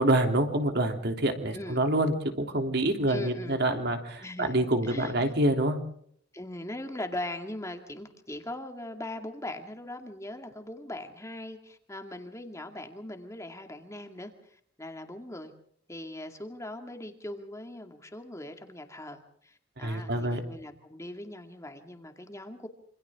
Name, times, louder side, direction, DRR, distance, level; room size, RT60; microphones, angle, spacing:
voice 1, 0.0-5.8 19.8-20.4, right 1 dB, 55° right, 4 dB, 3.2 m, -26 dB
voice 2, 3.1-3.6 4.2-5.3 6.3-15.5 15.9-22.7, left 1 dB, 15° left, 5 dB, 2.3 m, -40 dB
27.0 x 26.5 x 3.7 m, 0.63 s
head